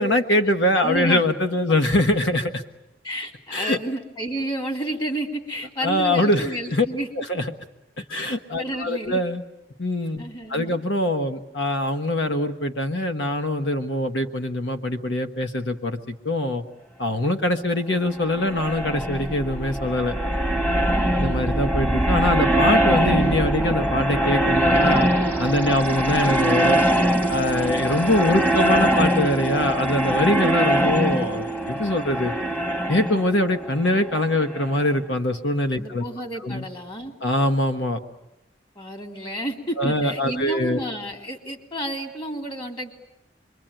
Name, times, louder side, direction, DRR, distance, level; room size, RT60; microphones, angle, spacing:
voice 1, 0.0-2.6 3.5-3.8 5.8-6.8 7.2-7.4 8.1-9.4 9.8-10.2 10.5-16.6 17.0-20.1 21.1-25.1 25.4-26.8 27.3-32.3 32.9-36.0 36.4-36.7 37.2-38.0 39.8-40.8, left 1 dB, 85° left, 7 dB, 1.3 m, -23 dB
voice 2, 0.7-1.2 3.0-7.1 8.1-8.2 8.6-9.2 10.2-10.8 20.9-21.3 35.7-37.1 38.7-42.9, right 1 dB, 25° left, 3 dB, 3.4 m, -31 dB
sound 1, 18.2-34.8, right 1 dB, 10° left, 1.6 m, -22 dB
27.5 x 23.5 x 9.0 m, 0.94 s
head